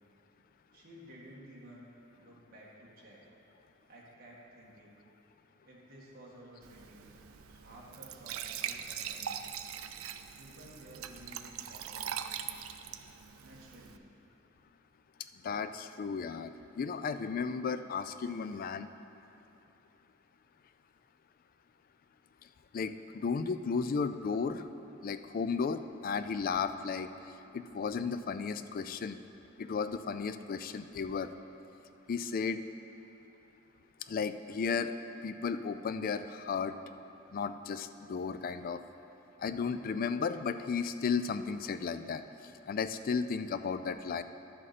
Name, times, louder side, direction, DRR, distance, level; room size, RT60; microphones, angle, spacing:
voice 1, 0.7-1.9 2.2-3.2 3.9-5.0 5.6-7.1 7.5-9.5 10.4-12.2 13.4-14.1, right 1 dB, 45° right, -6 dB, 1.7 m, -53 dB
Glass / Trickle dribble / Fill (with liquid), 6.6-14.0, right 9 dB, 85° right, 0.4 m, -42 dB
voice 2, 15.4-18.9 22.7-24.6 25.0-27.1 27.5-29.2 29.6-31.3 32.1-32.6 34.1-34.9 35.2-36.8 37.3-38.8 39.4-44.2, left 5 dB, 45° left, 11 dB, 0.3 m, -34 dB
11.0 x 7.5 x 4.2 m, 2.9 s
head